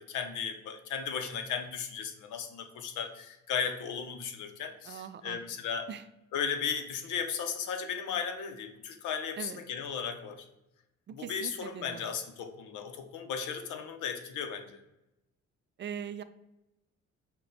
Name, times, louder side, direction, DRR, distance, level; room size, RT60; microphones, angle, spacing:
voice 1, 0.0-5.9 6.3-10.5 11.1-14.8, left 7 dB, 85° left, 7 dB, 0.7 m, -36 dB
voice 2, 4.8-5.4 5.9-6.0 9.4-9.6 11.1-12.1 15.8-16.2, right 8 dB, 40° right, 12 dB, 0.4 m, -41 dB
5.8 x 2.2 x 3.9 m, 0.90 s
cardioid pair, 90°, 30 cm